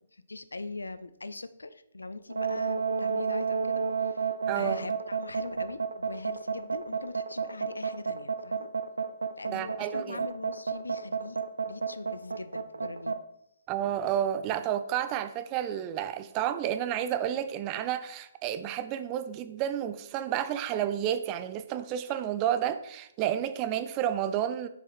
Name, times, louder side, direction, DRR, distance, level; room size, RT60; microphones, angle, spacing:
voice 1, 0.1-8.7 9.4-11.4 11.7-13.2, left 3 dB, 75° left, 13 dB, 0.6 m, -41 dB
sound 1, 2.3-13.2, right 6 dB, 70° right, 0.7 m, -30 dB
voice 2, 4.5-4.9 9.5-10.2 13.7-24.7, right 10 dB, 25° right, 11 dB, 0.6 m, -31 dB
7.3 x 6.8 x 4.3 m, 0.75 s
figure-of-eight pair, 130°, 0 cm